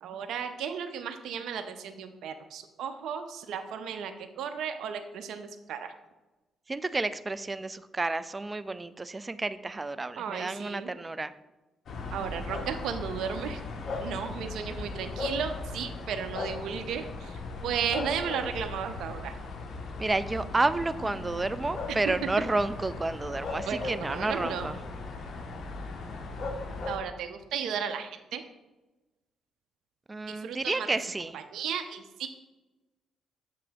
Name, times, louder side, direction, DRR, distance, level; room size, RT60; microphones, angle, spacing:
voice 1, 0.0-5.9 10.2-10.9 12.1-13.6 14.0-19.4 23.7-24.7 26.9-28.4 30.3-30.9 31.3-32.3, right 7 dB, 80° right, 7 dB, 0.5 m, -35 dB
voice 2, 6.7-11.3 20.0-24.8 30.1-31.4, right 2 dB, 20° right, 13 dB, 0.3 m, -30 dB
sound 1, 11.9-27.0, left 3 dB, 60° left, 0.9 m, -37 dB
7.2 x 3.4 x 5.1 m, 1.1 s
cardioid pair, 90°, 0 cm